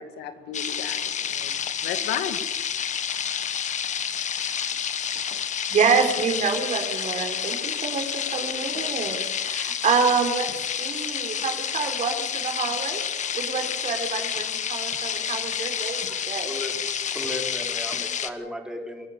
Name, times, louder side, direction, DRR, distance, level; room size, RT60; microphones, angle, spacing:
voice 1, 0.0-2.4, left 8 dB, 85° left, 8 dB, 2.1 m, -34 dB
sound 1, 0.5-18.3, left 8 dB, 45° left, 1.3 m, -29 dB
voice 2, 5.7-13.0 13.3-16.0 16.3-16.5, right 5 dB, 45° right, 4 dB, 4.4 m, -27 dB
voice 3, 16.1-16.8 17.1-19.1, left 1 dB, 5° right, 2 dB, 4.5 m, -35 dB
24.5 x 13.5 x 9.0 m, 1.1 s
cardioid pair, 110°, 17 cm